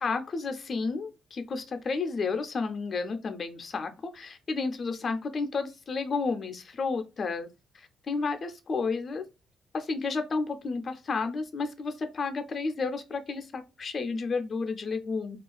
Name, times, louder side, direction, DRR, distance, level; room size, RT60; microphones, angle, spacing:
voice 1, 0.0-7.5 7.7-9.3 9.7-15.4, left 4 dB, 45° left, 0.5 m, -31 dB
2.4 x 2.3 x 2.2 m
cardioid pair, 80°, 0 cm